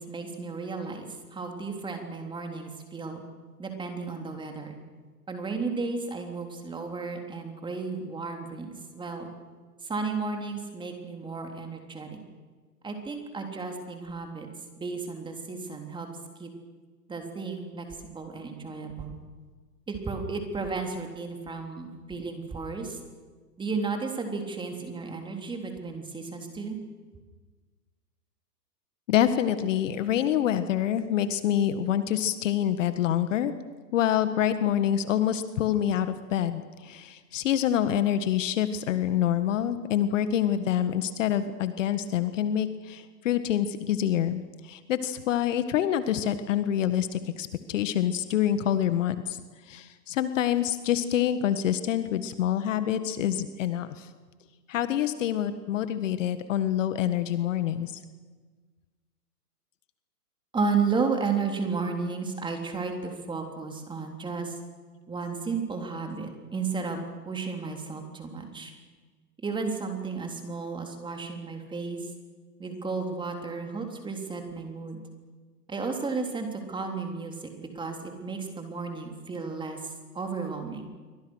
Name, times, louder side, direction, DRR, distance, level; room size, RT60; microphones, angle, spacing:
voice 1, 0.0-3.2 3.6-4.8 5.3-9.3 9.8-12.2 12.8-14.5 14.8-16.1 16.4-16.5 17.1-19.2 19.9-23.0 23.6-26.8 60.5-64.6 65.1-67.0 67.3-68.7 69.4-72.1 72.6-75.0 75.7-80.9, right 4 dB, 10° right, 3 dB, 3.5 m, -33 dB
voice 2, 29.1-33.5 33.9-49.4 49.7-54.1 54.7-57.9, left 10 dB, 50° left, 11 dB, 1.7 m, -26 dB
27.5 x 24.5 x 6.4 m, 1.4 s
hypercardioid pair, 125°, 48 cm